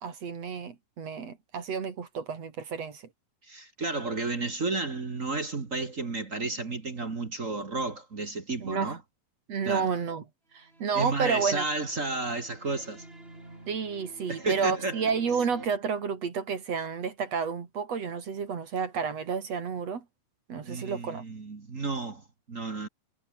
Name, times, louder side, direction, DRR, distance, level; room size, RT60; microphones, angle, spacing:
voice 1, 0.0-3.0 8.6-9.0 9.5-10.2 10.5-11.7 13.7-20.0 20.5-21.2, right 6 dB, 50° right, 3.4 m, -31 dB
voice 2, 3.5-9.0 9.6-9.9 10.9-13.0 14.3-15.0 20.6-22.9, right 3 dB, 30° right, 1.6 m, -32 dB
sound 1, 10.6-15.7, right 2 dB, 15° right, 5.3 m, -48 dB
omnidirectional pair, 4.0 m